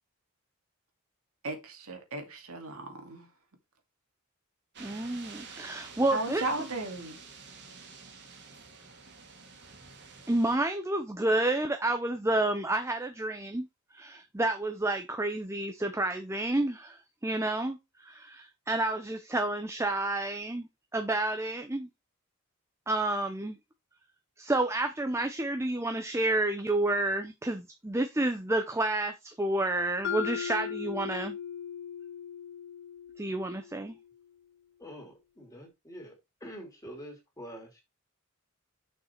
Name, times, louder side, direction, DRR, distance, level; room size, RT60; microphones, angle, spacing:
voice 1, 1.4-3.3 6.1-7.2, right 2 dB, 75° right, 2.1 m, -36 dB
sound 1, 4.7-10.6, right 5 dB, 50° right, 2.0 m, -49 dB
voice 2, 4.8-6.4 10.3-13.7 13.9-17.0 17.2-17.8 18.0-21.9 22.9-23.6 24.4-31.3 33.2-34.0, right 2 dB, 10° right, 0.6 m, -30 dB
Mallet percussion, 30.0-34.1, left 8 dB, 50° left, 0.5 m, -38 dB
voice 3, 34.8-36.1 36.4-37.8, equal, 15° left, 2.7 m, -46 dB
6.5 x 5.4 x 4.4 m
head